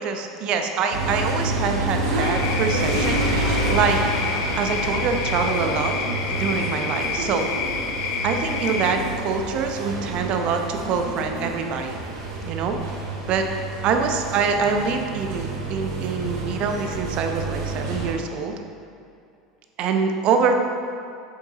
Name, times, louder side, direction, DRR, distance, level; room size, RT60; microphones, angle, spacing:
voice 1, 0.0-4.0 4.6-5.9 6.3-7.5 8.2-11.9 12.4-12.8 13.3-13.5 13.8-18.5 19.8-20.6, right 5 dB, 45° right, 4 dB, 0.7 m, -25 dB
sound 1, 0.9-18.1, right 2 dB, 60° right, 1.3 m, -28 dB
sound 2, 2.2-8.9, left 5 dB, 55° left, 0.6 m, -29 dB
8.0 x 6.7 x 3.0 m, 2.5 s
figure-of-eight pair, 75°, 2 cm